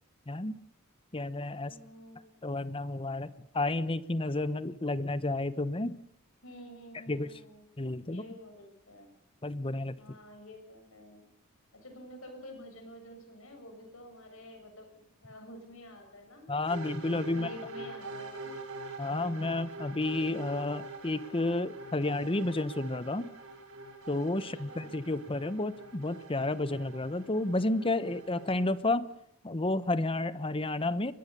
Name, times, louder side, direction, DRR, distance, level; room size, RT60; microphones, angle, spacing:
voice 1, 0.3-0.6 1.1-1.7 2.4-6.0 7.1-7.3 7.8-8.2 9.4-10.0 16.5-17.5 19.0-23.3 24.1-29.1 29.4-31.1, left 2 dB, 25° left, 15 dB, 0.9 m, -31 dB
voice 2, 1.6-2.3 6.4-7.7 8.1-9.1 10.0-11.2 11.7-16.5 17.3-18.5 24.5-24.9, left 1 dB, 70° left, 5 dB, 7.1 m, -49 dB
sound 1, 16.7-28.7, right 2 dB, 75° right, 5.6 m, -45 dB
23.0 x 21.0 x 6.9 m, 0.74 s
head